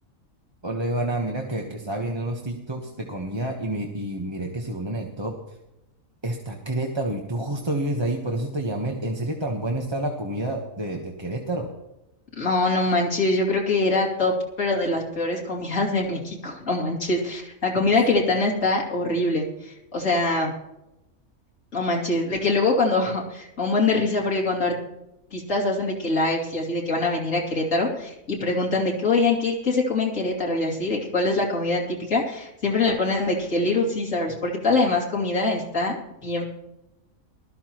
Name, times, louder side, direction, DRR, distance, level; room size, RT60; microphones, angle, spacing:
voice 1, 0.6-5.6 6.2-11.7 17.8-17.9, right 1 dB, 20° right, 0 dB, 1.1 m, -29 dB
voice 2, 12.4-20.5 21.7-24.7 25.3-36.0 36.2-36.5, left 2 dB, 70° left, -3 dB, 3.2 m, -24 dB
19.5 x 13.5 x 3.0 m, 0.92 s
omnidirectional pair, 1.4 m